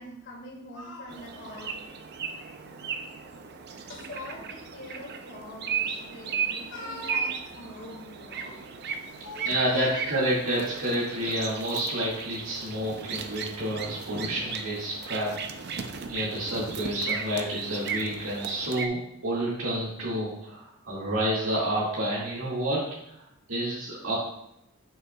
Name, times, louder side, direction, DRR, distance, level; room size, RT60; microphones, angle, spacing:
voice 1, 0.0-1.7 3.9-8.6 9.2-10.2, left 2 dB, 60° left, -3 dB, 2.3 m, -42 dB
sound 1, 1.1-18.9, right 6 dB, 55° right, 0.6 m, -36 dB
voice 2, 9.5-15.3 15.6-15.7 16.1-22.8 23.1-23.2 23.5-24.2, right 1 dB, 75° right, -6 dB, 2.1 m, -29 dB
10.0 x 5.8 x 2.3 m, 0.82 s
head